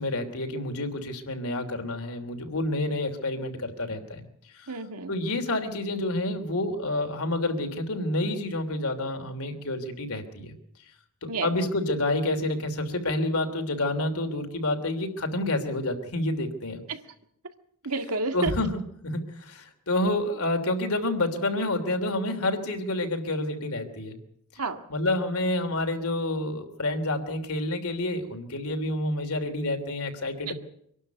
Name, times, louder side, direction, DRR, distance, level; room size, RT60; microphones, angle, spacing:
voice 1, 0.0-4.2 4.5-4.7 5.1-10.5 11.2-16.8 18.3-24.2 24.9-30.5, left 1 dB, 75° left, 5 dB, 3.0 m, -29 dB
voice 2, 4.7-5.1 11.3-11.5 16.9-17.0 17.8-18.5 24.6-24.9 30.5-30.6, right 3 dB, 90° right, 7 dB, 2.0 m, -30 dB
24.5 x 12.0 x 9.2 m, 0.71 s
head